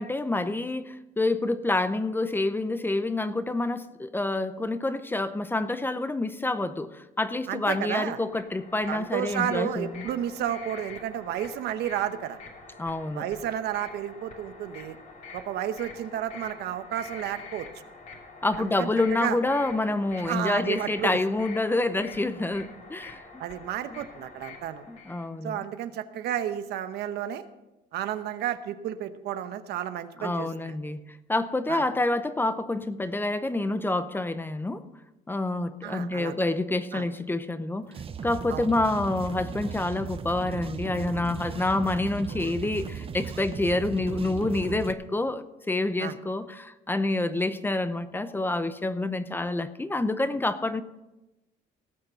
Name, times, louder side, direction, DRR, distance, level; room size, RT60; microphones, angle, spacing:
voice 1, 0.0-10.1 12.8-13.3 18.4-23.4 23.9-24.0 24.9-25.6 30.2-34.9 35.3-37.9 38.2-50.8, left 2 dB, 10° left, 12 dB, 0.6 m, -28 dB
voice 2, 7.5-8.2 8.9-12.4 13.1-15.0 15.3-17.7 18.6-19.4 20.3-21.2 23.4-24.8 25.4-27.4 27.9-30.8 31.7-31.8 35.8-36.3 36.9-37.1 38.5-38.7 46.0-46.1, right 10 dB, 75° right, 10 dB, 0.9 m, -32 dB
sound 1, 8.2-25.3, left 4 dB, 50° left, 2.7 m, -46 dB
sound 2, 37.9-44.9, right 7 dB, 35° right, 0.8 m, -37 dB
18.0 x 6.6 x 5.6 m, 0.99 s
cardioid pair, 110°, 17 cm